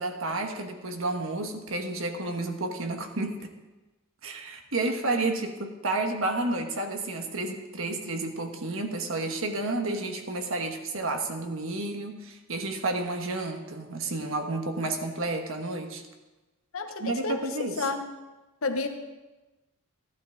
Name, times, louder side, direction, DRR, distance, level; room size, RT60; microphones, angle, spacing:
voice 1, 0.0-3.5 4.2-16.0 17.0-17.9, right 2 dB, 70° right, 4 dB, 1.4 m, -31 dB
voice 2, 16.7-18.1 18.6-18.9, left 3 dB, 75° left, 6 dB, 1.0 m, -30 dB
15.0 x 11.5 x 3.9 m, 1.1 s
head